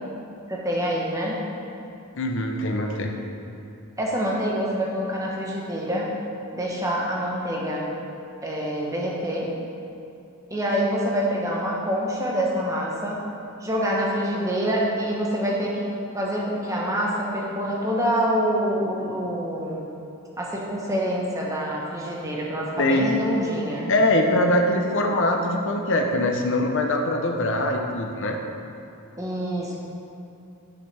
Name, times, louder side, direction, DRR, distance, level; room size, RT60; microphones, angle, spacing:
voice 1, 0.5-1.4 4.0-6.1 6.5-7.9 8.4-9.5 10.5-13.2 13.6-15.9 16.1-19.9 20.4-23.9 29.2-29.8, equal, 15° right, -4 dB, 1.1 m, -26 dB
voice 2, 2.1-3.2 22.8-23.1 23.9-28.4, left 1 dB, 55° left, 3 dB, 0.8 m, -22 dB
9.6 x 6.7 x 3.4 m, 2.7 s
head